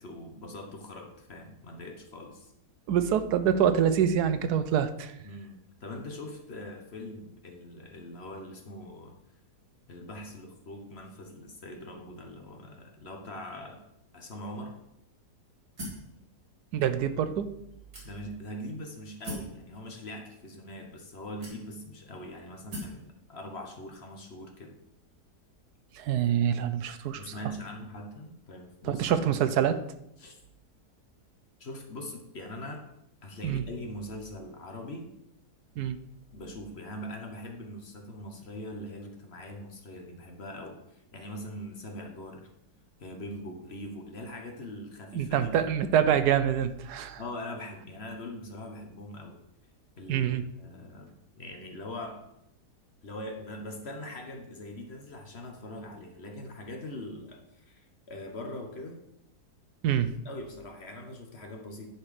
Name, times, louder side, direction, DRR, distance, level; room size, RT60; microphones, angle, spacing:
voice 1, 0.0-2.5 5.2-9.1 9.9-13.8 14.1-14.8 18.0-24.8 27.2-29.0 30.2-30.4 31.6-32.8 33.2-35.1 36.3-42.5 43.0-45.5 47.2-49.4 50.0-52.2 53.0-59.0 60.2-61.9, left 1 dB, 45° left, 3 dB, 1.1 m, -42 dB
voice 2, 2.9-5.1 16.7-17.5 25.9-27.3 28.8-29.8 33.4-33.6 35.8-36.0 45.1-47.2 50.1-50.4 59.8-60.2, right 9 dB, 80° right, 11 dB, 1.2 m, -26 dB
sound 1, 15.8-16.1 16.9-17.0 17.9-18.5 19.2-19.6 20.5-20.6 21.4-22.0 22.7-23.0, equal, 55° right, 2.9 m, -40 dB
10.5 x 4.4 x 5.0 m, 0.80 s
omnidirectional pair, 1.7 m